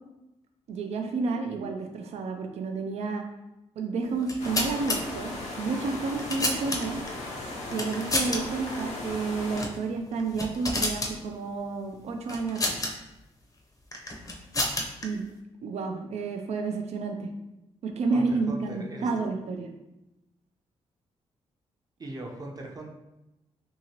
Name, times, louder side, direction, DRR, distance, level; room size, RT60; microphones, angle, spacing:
voice 1, 0.7-3.2 3.8-7.0 7.7-12.8 15.0-15.2 15.6-17.3 17.8-19.7, right 4 dB, 70° right, 4 dB, 0.4 m, -30 dB
sound 1, 4.2-5.0 5.8-7.1 7.7-8.4 8.7-8.8 9.5-9.8 10.1-11.1 12.3-12.9 13.9-15.0, left 2 dB, 30° left, 0.6 m, -30 dB
sound 2, 4.4-9.7, left 1 dB, 80° left, 0.6 m, -37 dB
voice 2, 18.1-19.3 22.0-22.9, right 2 dB, 35° right, 0 dB, 0.6 m, -39 dB
2.8 x 2.7 x 2.8 m, 0.93 s
cardioid pair, 65°, 11 cm